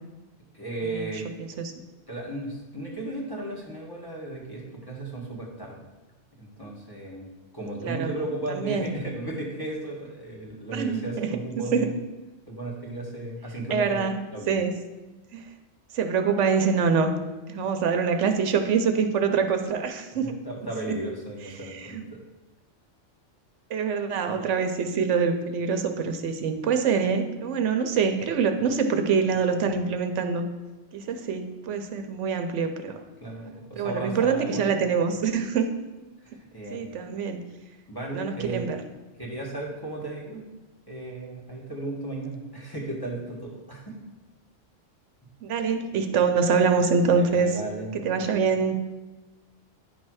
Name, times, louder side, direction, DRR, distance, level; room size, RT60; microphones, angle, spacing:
voice 1, 0.5-1.2 2.1-5.8 6.4-7.3 7.5-12.0 12.5-14.0 14.3-14.5 20.2-22.2 33.2-34.6 36.2-36.9 37.9-38.7 39.2-40.4 40.9-44.0 47.1-48.3, right 2 dB, 20° left, -4 dB, 1.5 m, -35 dB
voice 2, 1.4-1.7 7.8-8.1 8.5-8.9 10.7-11.3 11.7-11.9 13.7-14.7 15.3-15.5 15.9-17.1 17.5-20.3 21.6-22.0 23.7-30.5 30.9-33.0 33.8-35.7 36.7-37.4 38.1-38.8 45.4-47.6 48.0-48.7, right 5 dB, 80° right, 7 dB, 1.0 m, -25 dB
9.5 x 3.2 x 6.2 m, 1.1 s
omnidirectional pair, 1.2 m